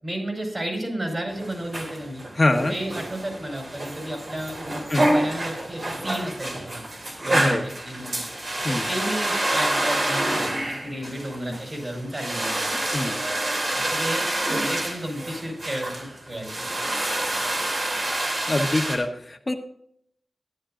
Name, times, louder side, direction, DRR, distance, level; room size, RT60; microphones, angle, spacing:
voice 1, 0.0-2.2 2.7-6.8 7.2-8.2 8.7-12.6 13.7-16.7, right 1 dB, 40° right, 2 dB, 4.9 m, -32 dB
sound 1, 1.3-19.0, right 1 dB, 55° right, 2.7 m, -28 dB
voice 2, 2.3-2.8 4.9-5.1 7.3-7.7 8.6-8.9 11.5-11.6 12.9-13.2 18.5-19.5, left 2 dB, 35° left, 5 dB, 1.2 m, -24 dB
14.0 x 11.0 x 2.5 m, 0.69 s
wide cardioid pair, 90°, 0 cm